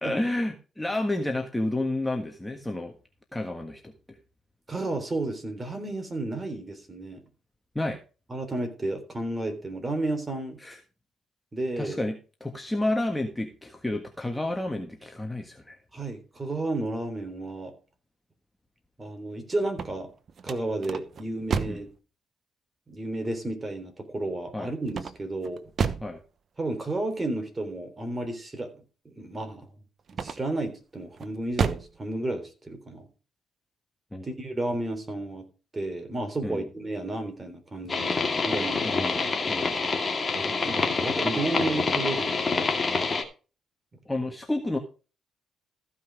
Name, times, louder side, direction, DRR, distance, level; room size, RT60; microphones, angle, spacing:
voice 1, 0.0-2.9 3.3-3.9 7.7-8.0 10.6-10.8 11.8-15.8 21.7-21.8 24.5-24.7 26.0-26.2 34.1-34.3 36.4-36.7 38.8-39.2 39.5-39.8 44.0-44.8, left 1 dB, 10° left, 4 dB, 1.5 m, -30 dB
voice 2, 4.7-7.2 8.3-10.6 11.5-12.0 15.9-17.7 19.0-20.1 20.4-21.9 22.9-25.6 26.6-28.7 29.1-29.7 30.2-33.1 34.2-35.4 35.7-38.1 38.4-39.0 40.3-42.8, right 2 dB, 25° right, 6 dB, 3.5 m, -32 dB
sound 1, 19.6-21.9 24.9-26.2 30.1-30.7 31.2-32.0, right 6 dB, 50° right, 1.0 m, -31 dB
sound 2, 37.9-43.2, left 4 dB, 30° left, 2.1 m, -27 dB
14.5 x 5.7 x 4.8 m, 0.34 s
cardioid pair, 90°, 0 cm